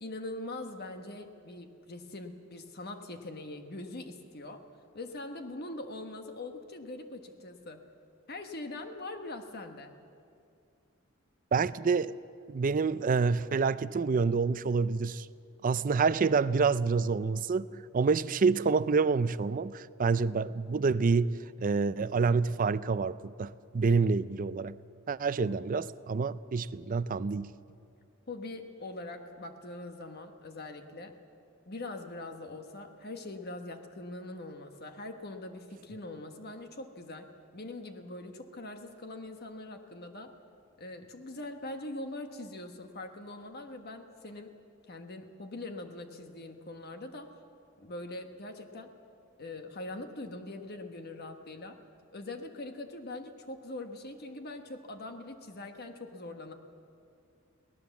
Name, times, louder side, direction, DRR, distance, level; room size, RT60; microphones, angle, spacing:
voice 1, 0.0-4.6 4.9-7.8 8.3-9.9 23.9-24.0 25.4-25.6 28.3-31.2 31.7-40.3 40.8-44.5 44.9-47.3 47.8-48.9 49.4-51.8 52.1-56.5, left 2 dB, 50° left, 6 dB, 1.3 m, -42 dB
voice 2, 11.5-12.2 12.5-15.3 15.6-24.8 25.1-27.5, right 4 dB, 40° right, 16 dB, 0.4 m, -28 dB
23.5 x 18.0 x 7.1 m, 2.5 s
head